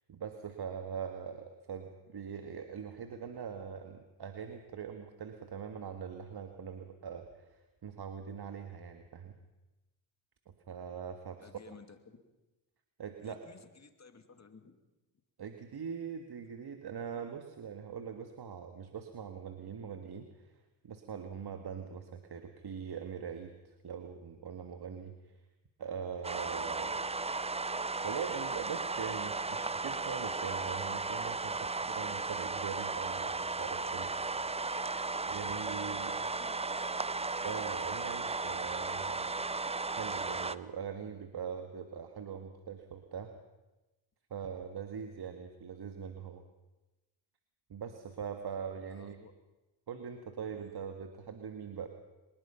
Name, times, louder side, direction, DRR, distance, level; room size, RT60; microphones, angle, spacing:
voice 1, 0.1-9.4 10.7-11.5 13.0-13.4 15.4-20.5 20.8-25.2 25.8-27.1 28.0-34.1 35.3-36.1 37.4-39.3 39.9-43.3 44.3-46.4 47.7-49.2 49.9-51.9, right 7 dB, 50° right, 6 dB, 1.8 m, -42 dB
voice 2, 11.4-12.2 13.2-14.8 17.1-17.2 29.6-29.7 31.8-31.9 35.5-37.0 48.9-49.3 50.4-50.7, left 5 dB, 35° left, 7 dB, 2.6 m, -57 dB
sound 1, 26.2-40.6, right 3 dB, 15° right, 0.6 m, -35 dB
23.0 x 20.5 x 5.8 m, 1.1 s
supercardioid pair, 65°, 48 cm